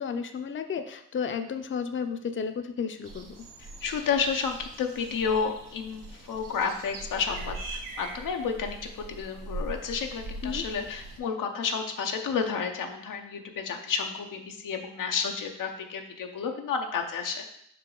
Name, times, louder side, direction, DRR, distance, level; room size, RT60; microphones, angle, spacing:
voice 1, 0.0-3.3 10.4-10.6, left 6 dB, 40° left, 7 dB, 0.5 m, -32 dB
sound 1, 3.0-11.2, right 2 dB, 80° right, 1.0 m, -41 dB
voice 2, 3.8-17.5, left 6 dB, 90° left, 4 dB, 0.7 m, -31 dB
5.7 x 4.6 x 3.8 m, 0.73 s
cardioid pair, 65°, 31 cm